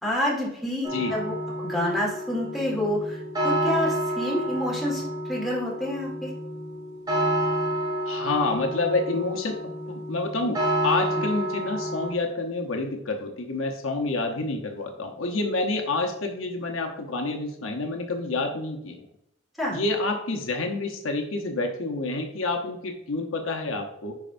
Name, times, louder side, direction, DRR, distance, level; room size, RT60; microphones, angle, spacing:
voice 1, 0.0-5.0 5.3-6.3 11.1-11.2 19.6-19.8, left 1 dB, ahead, -5 dB, 2.6 m, -28 dB
sound 1, 0.8-12.1, right 1 dB, 20° right, 2.0 m, -29 dB
voice 2, 8.1-19.1 19.7-24.1, left 3 dB, 75° left, 3 dB, 0.9 m, -28 dB
10.5 x 4.4 x 2.6 m, 0.79 s
head